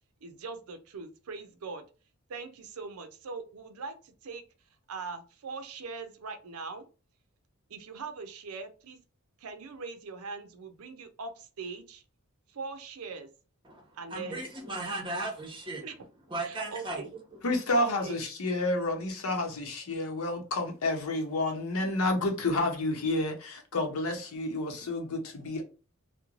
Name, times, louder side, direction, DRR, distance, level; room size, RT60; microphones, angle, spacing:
voice 1, 0.2-1.8 2.3-4.4 4.9-6.9 7.7-9.0 9.4-12.0 12.5-13.3 13.9-14.5 15.8-16.0 16.4-17.1 17.8-18.2, right 4 dB, 80° right, 0.5 m, -41 dB
voice 2, 14.1-15.8 16.3-17.0, right 2 dB, 25° right, 0.8 m, -36 dB
voice 3, 17.4-25.6, left 2 dB, 80° left, 0.7 m, -30 dB
3.0 x 2.1 x 2.4 m
head